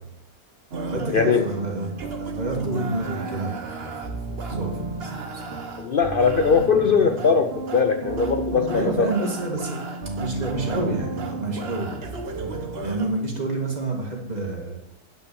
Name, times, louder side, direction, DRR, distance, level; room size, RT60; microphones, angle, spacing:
sound 1, 0.7-13.1, right 3 dB, 45° right, 1.2 m, -32 dB
voice 1, 0.9-3.5 3.8-5.6 8.7-9.8 10.2-12.6 12.8-14.8, right 2 dB, 25° right, -1 dB, 2.3 m, -29 dB
voice 2, 5.8-9.1, left 5 dB, 60° left, 7 dB, 0.6 m, -20 dB
9.6 x 5.9 x 7.0 m, 0.77 s
omnidirectional pair, 1.6 m